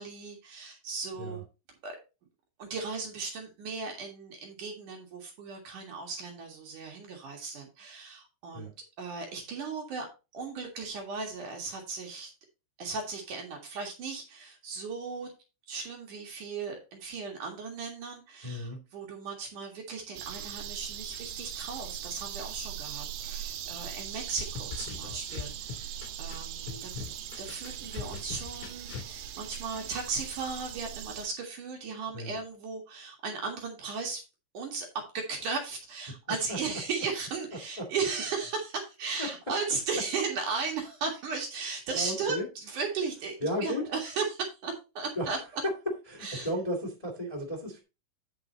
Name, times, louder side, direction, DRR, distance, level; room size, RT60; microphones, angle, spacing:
voice 1, 0.0-1.4 1.8-2.0 2.6-8.7 9.0-10.1 10.3-12.3 12.8-15.3 15.7-26.9 27.4-34.2 34.5-45.6 46.2-46.5, right 4 dB, 55° right, 1 dB, 2.7 m, -36 dB
voice 2, 18.4-18.8 32.1-32.3 36.5-36.6 37.8-37.9 39.2-39.3 41.9-42.5 43.4-43.9 45.1-45.3 46.1-47.8, equal, 55° left, 1 dB, 0.4 m, -34 dB
sound 1, 20.2-31.3, right 10 dB, 75° right, 2.8 m, -40 dB
sound 2, 24.4-26.3 26.7-29.1, left 6 dB, 75° left, 4.7 m, -40 dB
9.7 x 5.9 x 3.9 m, 0.29 s
omnidirectional pair, 5.5 m